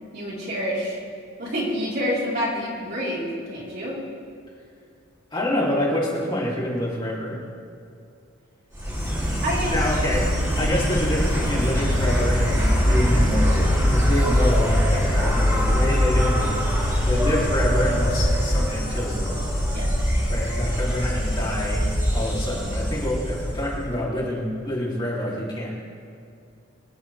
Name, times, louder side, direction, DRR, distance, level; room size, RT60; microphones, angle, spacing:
voice 1, 0.1-1.0 1.4-4.0 9.4-9.7 19.7-20.1, equal, 50° right, -7 dB, 4.5 m, -28 dB
voice 2, 5.3-7.4 9.7-19.4 20.3-21.9 22.1-25.8, left 1 dB, 25° left, -7 dB, 3.5 m, -27 dB
Insect, 8.7-23.8, equal, 15° right, 3.2 m, -22 dB
26.0 x 10.5 x 3.6 m, 2.4 s
head